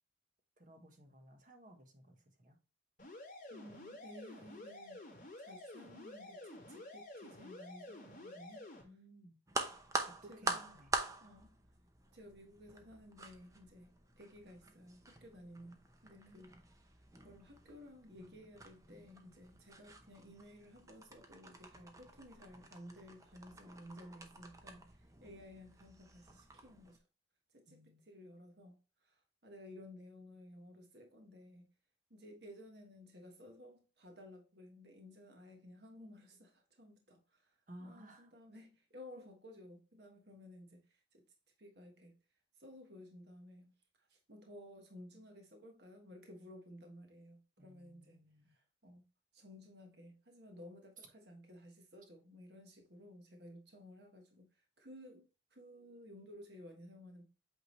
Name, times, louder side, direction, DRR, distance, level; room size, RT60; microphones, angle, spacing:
voice 1, 0.6-2.6 8.8-9.4 10.0-10.9 16.1-16.6 27.7-28.0 37.7-38.3 47.6-48.6 51.0-51.1, right 1 dB, 45° right, 1.3 m, -57 dB
sound 1, 3.0-8.8, left 2 dB, 40° left, 2.2 m, -51 dB
voice 2, 3.5-5.0 5.4-8.7 10.3-10.8 11.2-11.5 12.1-13.9 14.2-16.5 17.2-27.0 27.5-31.7 32.1-41.2 41.6-42.2 42.6-43.7 44.0-48.2 48.5-49.0 49.3-54.5 54.8-57.2, left 1 dB, 60° right, 1.4 m, -55 dB
sound 2, 9.5-27.0, right 2 dB, 15° right, 0.7 m, -46 dB
8.2 x 3.7 x 3.2 m
head